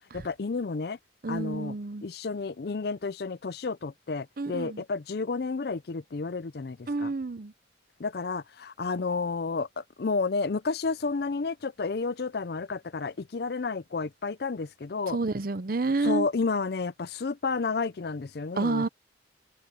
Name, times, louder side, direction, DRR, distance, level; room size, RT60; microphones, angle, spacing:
voice 1, 0.1-1.0 1.3-1.7 2.0-7.1 8.0-15.2 16.0-18.9, left 4 dB, 55° left, 0.5 m, -31 dB
voice 2, 1.2-2.0 4.4-4.8 6.9-7.5 15.1-16.3 18.6-18.9, right 3 dB, 50° right, 0.6 m, -29 dB
open air
head